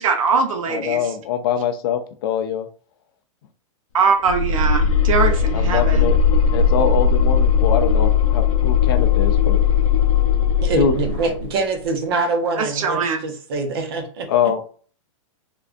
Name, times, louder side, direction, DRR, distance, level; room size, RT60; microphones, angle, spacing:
voice 1, 0.0-1.0 3.9-6.1 12.6-13.2, right 5 dB, 75° right, 4 dB, 0.8 m, -21 dB
voice 2, 0.7-2.7 5.5-6.2 6.5-9.6 10.8-10.9 14.3-14.6, left 8 dB, 45° left, 7 dB, 0.5 m, -23 dB
sound 1, 4.3-11.5, left 6 dB, 80° left, 0.7 m, -18 dB
voice 3, 10.6-14.3, right 3 dB, 45° right, 4 dB, 0.8 m, -24 dB
3.6 x 2.4 x 2.5 m, 0.43 s
supercardioid pair, 170°, 17 cm